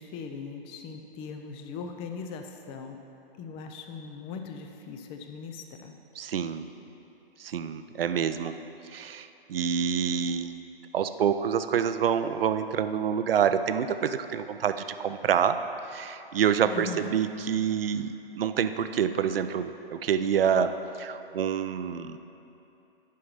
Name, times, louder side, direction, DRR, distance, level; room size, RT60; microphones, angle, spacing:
voice 1, 0.0-3.0 3.4-5.9 16.7-17.1, left 5 dB, 20° left, 5 dB, 0.5 m, -39 dB
voice 2, 6.2-6.7 7.4-8.5 8.9-10.6 10.9-15.6 15.9-22.2, right 8 dB, 70° right, 10 dB, 0.6 m, -27 dB
10.0 x 5.6 x 5.4 m, 2.9 s
figure-of-eight pair, 125°, 30 cm